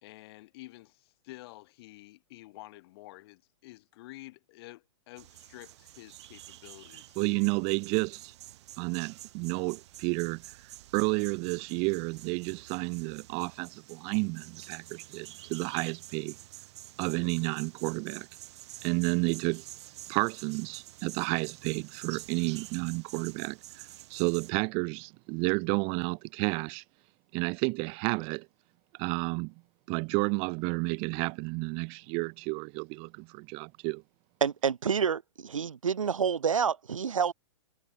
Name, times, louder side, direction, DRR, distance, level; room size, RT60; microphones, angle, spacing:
voice 1, 0.0-7.2, left 19 dB, 50° left, 4.2 m, -50 dB
sound 1, 5.2-24.5, right 14 dB, 60° right, 2.3 m, -49 dB
voice 2, 7.2-8.3 8.8-16.4 17.0-18.3 18.8-19.7 20.1-26.8 27.3-28.5 29.0-29.5 29.9-34.0, right 33 dB, 35° right, 0.7 m, -31 dB
voice 3, 34.4-37.3, right 7 dB, 90° right, 1.4 m, -28 dB
hypercardioid pair, 125°, 16 cm